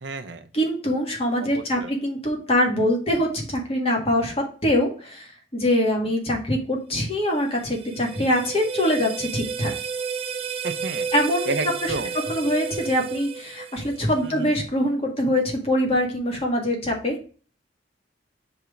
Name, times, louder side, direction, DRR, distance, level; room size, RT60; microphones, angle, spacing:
voice 1, 0.0-0.4 1.4-1.9 10.6-11.1 11.5-12.1 14.2-14.5, right 3 dB, 70° right, 8 dB, 0.8 m, -31 dB
voice 2, 0.5-9.7 11.1-11.5 11.8-11.9 12.3-17.2, equal, 35° left, 1 dB, 1.7 m, -24 dB
sound 1, 7.2-14.3, right 6 dB, 30° right, 0.5 m, -32 dB
5.9 x 3.5 x 5.2 m, 0.38 s
head